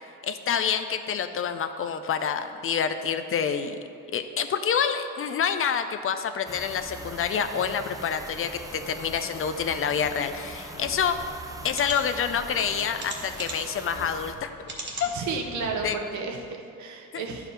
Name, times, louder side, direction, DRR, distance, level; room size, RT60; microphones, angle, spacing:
voice 1, 0.2-3.8 4.1-11.2 11.6-14.5 15.0-15.1 15.8-16.0 17.1-17.2, left 7 dB, 45° left, 9 dB, 0.5 m, -27 dB
sound 1, 6.5-14.4, right 2 dB, 10° right, 0.5 m, -41 dB
sound 2, 10.7-12.4 12.7-15.9, left 4 dB, 85° left, 0.9 m, -48 dB
sound 3, 11.7-12.0 13.0-13.8 14.6-15.1 15.7-15.8 16.1-16.2, right 2 dB, 35° right, 1.4 m, -37 dB
voice 2, 15.1-17.5, right 4 dB, 70° right, 2 dB, 0.9 m, -32 dB
10.0 x 4.7 x 3.3 m, 2.4 s
cardioid pair, 90°, 30 cm